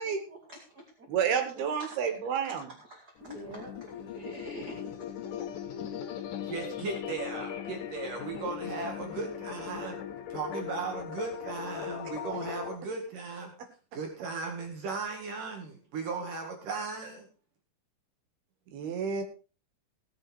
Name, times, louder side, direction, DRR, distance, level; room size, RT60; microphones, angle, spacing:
voice 1, 0.0-1.1 1.8-2.0 2.4-3.7 4.0-4.8, right 1 dB, 35° right, 2 dB, 2.0 m, -46 dB
voice 2, 1.1-2.7 18.7-19.2, right 7 dB, 90° right, 6 dB, 4.0 m, -30 dB
sound 1, 3.2-12.7, left 9 dB, 65° left, 2.7 m, -39 dB
voice 3, 6.4-10.0 10.3-13.5 13.9-17.3, right 4 dB, 60° right, 2 dB, 3.5 m, -37 dB
18.0 x 7.8 x 4.5 m, 0.34 s
omnidirectional pair, 4.3 m